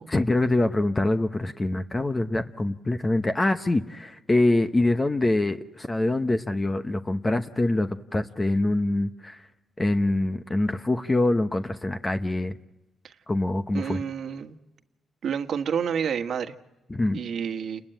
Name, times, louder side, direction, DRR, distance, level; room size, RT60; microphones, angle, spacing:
voice 1, 0.1-9.4 9.8-12.6 13.3-14.0 16.9-17.2, left 2 dB, 20° left, 8 dB, 0.9 m, -24 dB
voice 2, 13.7-14.6 15.2-16.5 17.1-17.8, right 7 dB, 65° right, 7 dB, 1.5 m, -29 dB
29.5 x 20.5 x 9.1 m, 0.99 s
cardioid pair, 115°, 0 cm